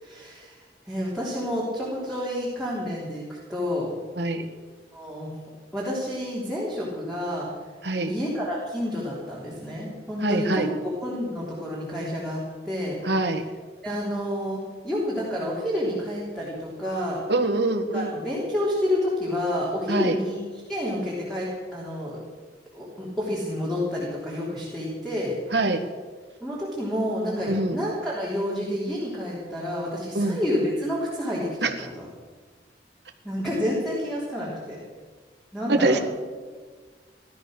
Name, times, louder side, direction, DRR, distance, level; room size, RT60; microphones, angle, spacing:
voice 1, 0.0-0.6 0.9-3.2 3.5-3.9 4.9-5.3 5.7-7.5 8.1-10.7 11.0-13.0 13.8-17.2 17.9-20.3 20.7-22.2 22.7-25.3 26.4-32.1 33.2-34.8 35.5-36.0, left 1 dB, ahead, -6 dB, 3.6 m, -29 dB
voice 2, 10.2-10.7 13.0-13.4 17.3-18.1 19.9-20.2 25.5-25.8 27.5-27.8 30.1-30.4 31.6-31.7 35.7-36.0, right 2 dB, 70° right, 5 dB, 1.7 m, -24 dB
17.5 x 12.5 x 6.6 m, 1.5 s
head